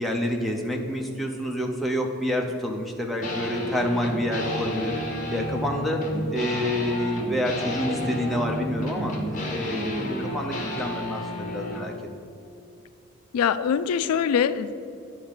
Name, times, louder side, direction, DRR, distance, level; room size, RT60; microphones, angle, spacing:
voice 1, 0.0-4.9 5.3-6.0 6.3-9.2 9.5-11.9, equal, ahead, -1 dB, 0.6 m, -28 dB
sound 1, 3.2-11.9, left 1 dB, 35° left, 1.1 m, -31 dB
voice 2, 13.3-14.7, left 7 dB, 80° left, 13 dB, 0.3 m, -23 dB
10.0 x 3.5 x 6.5 m, 2.5 s
head